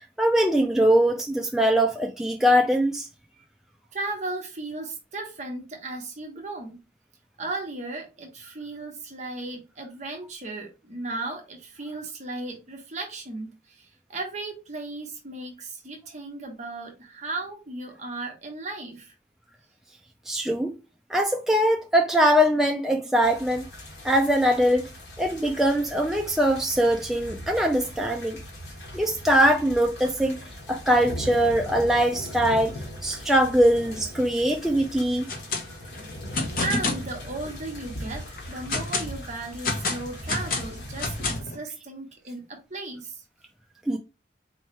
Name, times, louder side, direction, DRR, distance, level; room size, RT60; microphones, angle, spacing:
voice 1, 0.2-3.1 20.3-20.8 21.1-23.7 24.0-24.9 25.2-28.4 28.9-30.4 30.7-32.7 33.0-35.3 43.9-44.0, equal, ahead, 0.4 m, -22 dB
voice 2, 3.9-6.8 7.4-19.1 36.6-43.2, right 2 dB, 40° right, 1.0 m, -36 dB
sound 1, 23.2-41.4, equal, 80° left, 1.5 m, -40 dB
sound 2, 35.1-35.6 35.9-37.1 37.6-37.7 38.2-39.1 39.6-41.6, left 3 dB, 50° left, 1.0 m, -28 dB
4.2 x 3.1 x 3.1 m
head